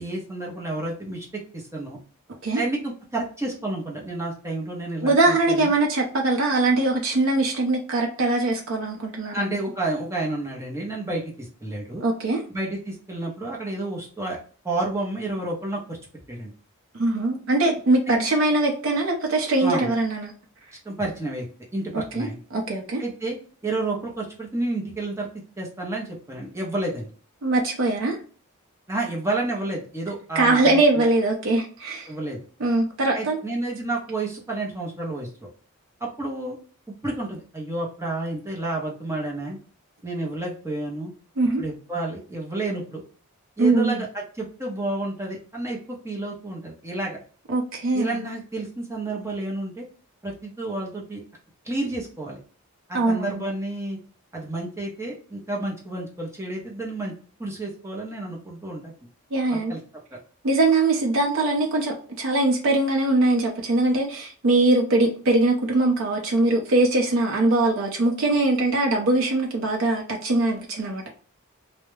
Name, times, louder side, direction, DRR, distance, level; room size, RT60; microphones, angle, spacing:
voice 1, 0.0-2.0 2.5-5.7 9.3-12.0 12.5-14.4 14.6-16.0 16.3-16.5 18.1-18.2 19.6-19.9 20.8-21.4 21.7-22.4 23.0-23.4 23.6-25.3 25.6-27.1 28.9-31.1 32.1-32.4 33.1-35.3 36.0-36.6 37.0-39.6 40.0-41.1 41.6-43.0 43.6-47.2 47.9-49.9 50.2-51.2 51.6-52.4 52.9-54.0 54.3-57.1 57.4-58.9 59.5-59.8, right 2 dB, 15° right, -3 dB, 0.7 m, -30 dB
voice 2, 5.0-9.6 12.0-12.4 17.0-20.3 21.9-23.0 27.4-28.2 30.4-32.1 32.6-33.4 41.4-41.6 43.6-44.0 47.5-48.2 52.9-53.4 59.3-59.7 60.4-71.1, right 2 dB, 65° right, 1 dB, 0.5 m, -22 dB
2.3 x 2.1 x 3.0 m, 0.42 s
head